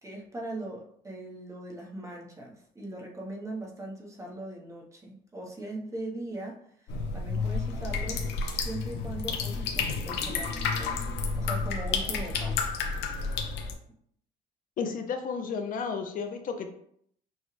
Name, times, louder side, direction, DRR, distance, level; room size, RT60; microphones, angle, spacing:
voice 1, 0.0-8.2 8.6-11.0 11.4-12.7, right 1 dB, 15° right, -2 dB, 1.2 m, -40 dB
sound 1, 6.9-13.7, left 4 dB, 85° left, 0.8 m, -31 dB
voice 2, 14.8-16.7, left 5 dB, 55° left, 5 dB, 0.6 m, -32 dB
6.1 x 2.4 x 3.3 m, 0.67 s
cardioid pair, 110°, 17 cm